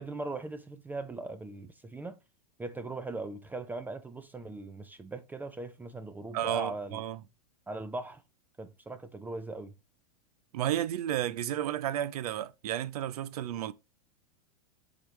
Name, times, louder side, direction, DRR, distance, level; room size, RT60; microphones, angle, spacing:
voice 1, 0.0-2.2 2.6-7.0 7.7-8.2 8.6-9.7, right 2 dB, 10° right, 0.5 m, -39 dB
voice 2, 6.3-7.2 10.5-13.7, right 11 dB, 75° right, 0.6 m, -32 dB
7.7 x 4.0 x 3.1 m
hypercardioid pair, 130°, 20 cm